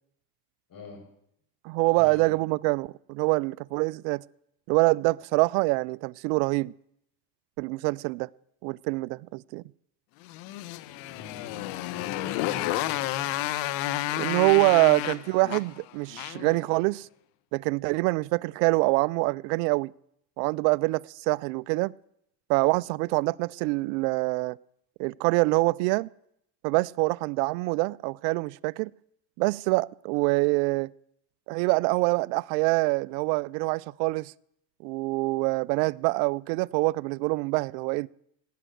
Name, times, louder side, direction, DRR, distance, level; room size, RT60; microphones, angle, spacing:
voice 1, 0.7-1.1 1.9-2.3 11.1-13.6, left 4 dB, 40° left, 7.6 m, -45 dB
voice 2, 1.6-4.2 4.7-6.7 7.6-8.3 8.6-9.6 14.2-17.1 17.5-19.9 20.4-21.9 22.5-24.6 25.0-26.1 26.6-28.9 29.4-30.9 31.5-34.3 34.8-38.1, right 25 dB, 80° right, 0.5 m, -25 dB
Motorcycle, 10.2-16.6, left 15 dB, 70° left, 1.2 m, -31 dB
18.5 x 9.2 x 7.8 m
supercardioid pair, 110°, 48 cm